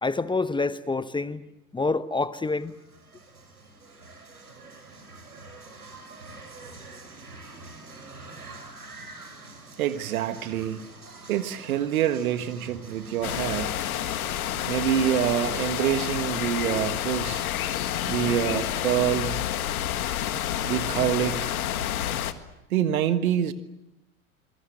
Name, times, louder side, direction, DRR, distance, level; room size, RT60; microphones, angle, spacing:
voice 1, 0.0-1.4 1.7-2.7, left 3 dB, 10° left, 0.9 m, -27 dB
sound 1, 2.3-16.2, right 3 dB, 90° right, 6.1 m, -46 dB
voice 2, 9.8-10.8 11.3-13.7 14.7-17.5 18.1-19.4 20.6-21.6 22.7-23.5, right 10 dB, 70° right, 1.6 m, -26 dB
sound 2, 13.2-22.3, left 11 dB, 70° left, 1.9 m, -29 dB
27.0 x 22.5 x 7.9 m
figure-of-eight pair, 85°, 44 cm